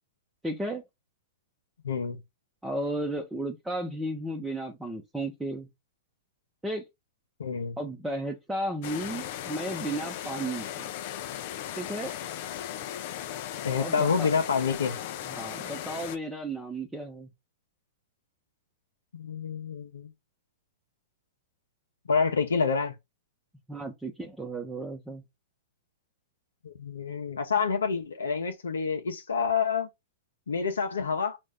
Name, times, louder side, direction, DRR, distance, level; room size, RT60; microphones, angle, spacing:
voice 1, 0.4-0.8 2.6-5.7 6.6-6.8 7.8-10.9 11.8-12.1 13.8-14.3 15.3-17.3 23.7-25.2, right 1 dB, 5° right, 0.8 m, -34 dB
voice 2, 1.8-2.2 7.4-7.8 13.6-15.0 19.1-20.1 22.1-22.9 26.6-29.9 30.5-31.4, left 5 dB, 90° left, 0.8 m, -28 dB
sound 1, 8.8-16.2, left 11 dB, 55° left, 0.6 m, -37 dB
5.3 x 2.6 x 3.4 m
hypercardioid pair, 120°, 0 cm